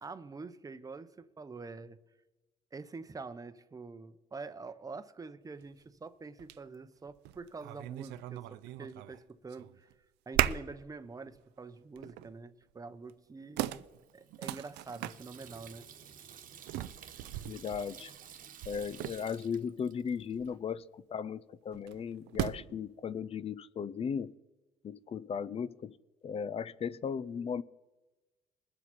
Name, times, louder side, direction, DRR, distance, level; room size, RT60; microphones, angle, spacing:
voice 1, 0.0-2.0 2.7-9.9 10.3-13.9 14.1-15.9, right 4 dB, 20° right, 0.8 m, -46 dB
sound 1, 5.6-5.7 6.4-6.6 7.0-9.2 9.5-9.9 10.3-10.8 11.3-11.4 12.0-12.3 13.1-13.2 13.6-15.2 16.7-19.6 21.7-22.8, right 14 dB, 90° right, 0.5 m, -37 dB
Water tap faucet / Sink (filling or washing), 13.8-20.5, right 8 dB, 55° right, 1.2 m, -53 dB
voice 2, 17.5-18.1 18.7-24.3 24.8-25.9 26.2-27.6, left 7 dB, 35° left, 0.5 m, -36 dB
21.5 x 7.4 x 4.2 m
cardioid pair, 110°, 17 cm